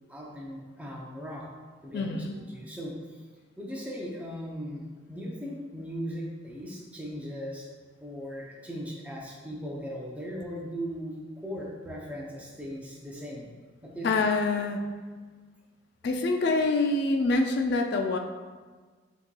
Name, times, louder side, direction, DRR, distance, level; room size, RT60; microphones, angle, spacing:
voice 1, 0.1-1.5 1.8-3.2 3.6-7.7 8.0-13.5 13.8-14.2, equal, 5° right, -3 dB, 0.6 m, -38 dB
voice 2, 1.9-2.4 14.0-14.8 16.0-18.2, left 3 dB, 55° left, 3 dB, 0.3 m, -26 dB
6.2 x 2.9 x 2.2 m, 1.4 s
head